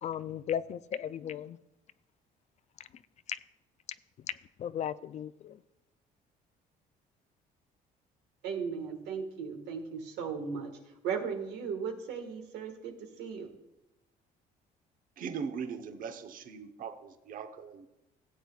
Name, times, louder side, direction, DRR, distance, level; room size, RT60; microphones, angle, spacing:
voice 1, 0.0-1.6 3.3-3.4 4.6-5.6, left 9 dB, 45° left, 0.4 m, -36 dB
voice 2, 8.4-10.7 11.0-13.5, right 6 dB, 85° right, 1.6 m, -36 dB
voice 3, 15.2-17.9, right 6 dB, 55° right, 0.9 m, -40 dB
16.5 x 8.1 x 2.4 m
cardioid pair, 110°, 17 cm